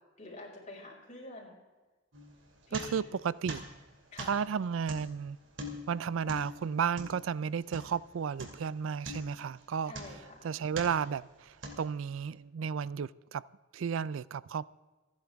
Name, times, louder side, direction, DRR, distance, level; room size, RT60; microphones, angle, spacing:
voice 1, 0.2-1.6 2.7-3.1 4.1-4.3 9.8-10.5, left 2 dB, 40° left, 5.1 m, -47 dB
sound 1, 2.1-3.2 3.5-8.1 8.4-8.7 9.0-10.4 10.7-11.2 11.6-12.2, right 1 dB, 70° right, 2.8 m, -43 dB
voice 2, 2.7-3.6 4.3-5.4 5.9-9.9 10.4-13.4 13.7-14.7, right 7 dB, 85° right, 0.4 m, -33 dB
28.0 x 10.5 x 3.5 m
head